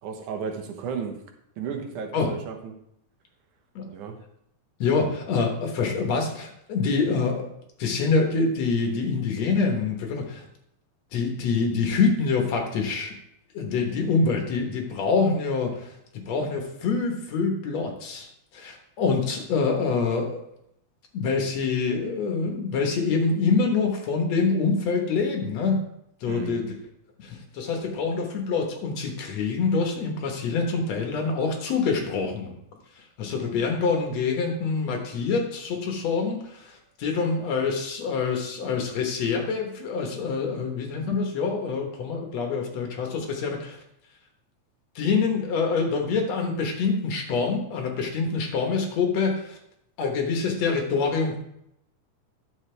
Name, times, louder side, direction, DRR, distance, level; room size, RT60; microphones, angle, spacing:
voice 1, 0.0-1.2 1.6-2.7 3.9-4.2 26.3-26.6, right 6 dB, 85° right, 4 dB, 2.6 m, -34 dB
voice 2, 4.8-7.5 7.8-10.4 11.1-13.1 13.5-18.3 18.5-20.4 21.1-25.8 26.2-26.7 27.2-32.5 33.0-43.8 45.0-49.6 50.0-51.4, left 4 dB, 65° left, 2 dB, 2.4 m, -26 dB
10.5 x 7.0 x 3.3 m, 0.75 s
omnidirectional pair, 3.4 m